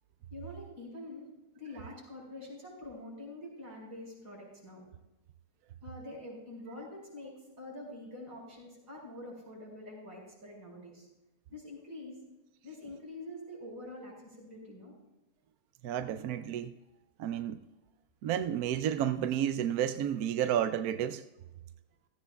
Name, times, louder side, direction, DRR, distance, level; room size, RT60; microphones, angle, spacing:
voice 1, 0.3-1.3 1.5-4.8 5.8-11.1 11.5-12.3 12.6-14.9, left 1 dB, 90° right, 5.8 m, -46 dB
voice 2, 15.8-16.8 17.2-17.6 18.2-21.2, right 10 dB, 70° right, 1.0 m, -31 dB
16.5 x 15.0 x 2.3 m
omnidirectional pair, 1.7 m